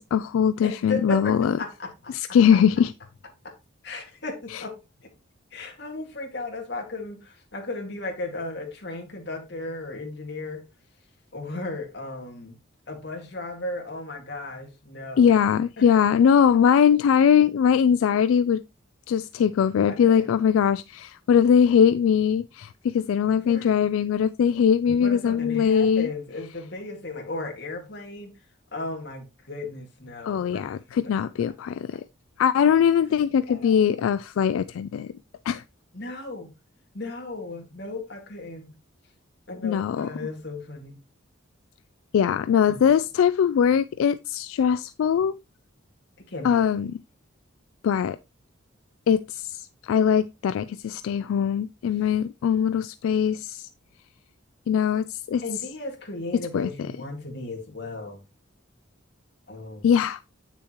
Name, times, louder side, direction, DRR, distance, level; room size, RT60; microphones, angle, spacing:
voice 1, 0.0-1.5 2.1-2.9 4.5-4.6 15.2-18.6 19.1-26.1 30.2-32.0 32.4-35.1 35.5-35.6 39.6-40.1 42.1-45.3 46.4-46.9 47.8-48.2 49.1-53.7 54.7-55.4 56.5-56.7 59.8-60.2, left 8 dB, 80° left, 0.3 m, -21 dB
voice 2, 0.6-2.4 3.4-3.5 3.8-4.8 5.5-10.6 11.3-12.6 12.9-15.3 15.8-15.9 19.9-20.3 23.4-23.9 24.9-28.3 28.7-30.8 31.0-31.1 33.5-34.1 35.9-36.5 36.9-38.8 39.5-41.0 42.7-42.9 46.3-46.7 51.9-52.0 55.4-58.2 59.5-59.9, left 2 dB, 55° left, 2.0 m, -35 dB
8.0 x 6.8 x 3.0 m
head